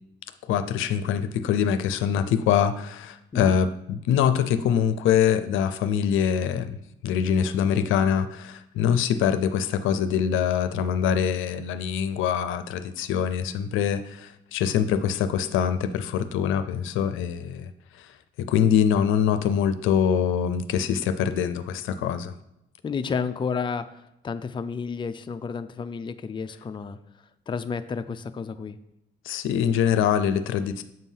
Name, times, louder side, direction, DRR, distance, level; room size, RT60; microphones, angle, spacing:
voice 1, 0.4-6.8 7.0-17.7 18.0-18.1 18.4-22.3 29.2-30.8, left 8 dB, 85° left, 11 dB, 0.5 m, -24 dB
voice 2, 22.8-27.0 27.5-28.8, left 5 dB, 25° left, 9 dB, 0.4 m, -31 dB
7.5 x 2.7 x 5.5 m, 0.84 s
cardioid pair, 90°, 20 cm